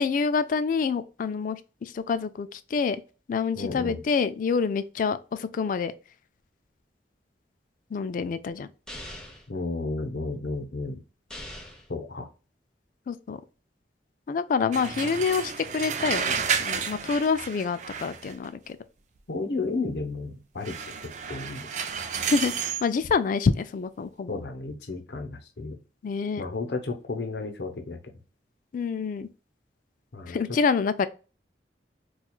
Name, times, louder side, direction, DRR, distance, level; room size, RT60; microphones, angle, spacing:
voice 1, 0.0-3.0 3.3-5.9 7.9-8.7 13.1-13.4 14.3-18.8 22.2-24.4 26.0-26.4 28.7-29.3 30.3-31.1, left 5 dB, 50° left, 0.3 m, -27 dB
voice 2, 3.5-4.0 9.5-11.0 11.9-12.3 19.3-21.7 24.3-25.8 26.4-28.0 30.1-30.4, left 3 dB, 70° left, 0.7 m, -33 dB
sound 1, 8.9-9.5 11.3-11.9, left 1 dB, 5° left, 0.7 m, -41 dB
sound 2, 14.7-18.5 20.6-22.9, right 6 dB, 45° right, 0.4 m, -31 dB
4.3 x 2.4 x 2.3 m
head